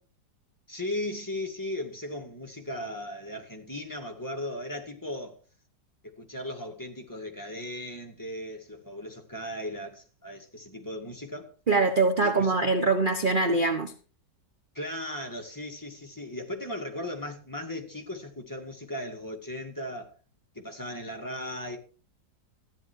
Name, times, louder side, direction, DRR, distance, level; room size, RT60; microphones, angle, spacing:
voice 1, 0.7-5.4 6.0-11.5 12.2-12.6 14.7-20.1 20.5-21.8, left 1 dB, 10° left, 2.1 m, -37 dB
voice 2, 11.7-13.9, right 3 dB, 30° right, 1.1 m, -23 dB
14.5 x 10.5 x 4.7 m
omnidirectional pair, 1.9 m